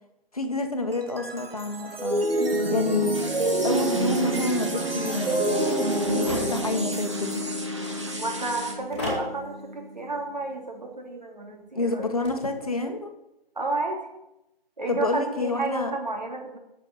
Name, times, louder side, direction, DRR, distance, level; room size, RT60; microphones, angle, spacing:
voice 1, 0.3-2.2 2.7-3.1 3.6-5.8 6.1-7.4 11.7-13.1 14.9-15.9, left 3 dB, 35° left, 5 dB, 1.6 m, -28 dB
sound 1, 0.9-10.2, right 1 dB, 70° right, 2.2 m, -28 dB
sound 2, 3.1-8.7, right 2 dB, 30° right, 1.9 m, -37 dB
sound 3, 6.0-6.8 8.9-9.3 12.0-12.4, left 1 dB, 10° left, 2.4 m, -32 dB
voice 2, 8.2-12.1 13.5-14.0 14.8-16.6, right 2 dB, 45° right, 2 dB, 2.9 m, -31 dB
10.5 x 7.4 x 8.6 m, 0.90 s
figure-of-eight pair, 175°, 30 cm